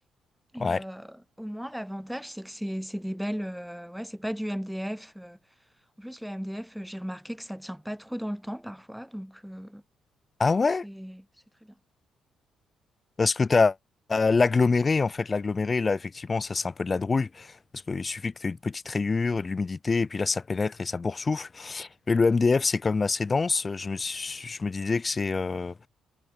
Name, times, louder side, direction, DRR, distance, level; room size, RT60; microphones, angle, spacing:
voice 1, 0.5-5.4 6.0-9.8 10.8-11.2 11.6-11.7, equal, ahead, 1.1 m, -36 dB
voice 2, 10.4-10.8 13.2-13.8 14.1-17.6 17.9-25.9, left 4 dB, 30° left, 0.9 m, -26 dB
cardioid pair, 90°, 0 cm